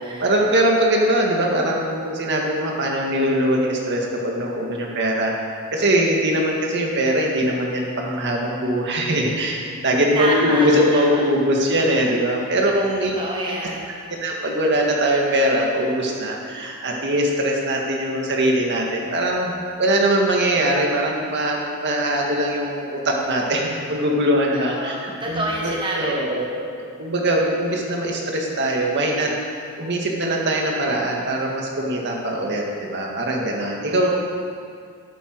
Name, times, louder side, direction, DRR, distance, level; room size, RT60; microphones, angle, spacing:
voice 1, 0.2-13.1 14.2-19.5 19.8-25.0 25.3-26.7 27.0-29.3 29.8-32.6 32.9-34.1, right 1 dB, 55° right, -1 dB, 1.9 m, -21 dB
voice 2, 10.1-11.3 12.5-13.9 24.5-26.4, right 1 dB, 20° right, -3 dB, 1.3 m, -28 dB
13.0 x 11.5 x 4.7 m, 2.3 s
head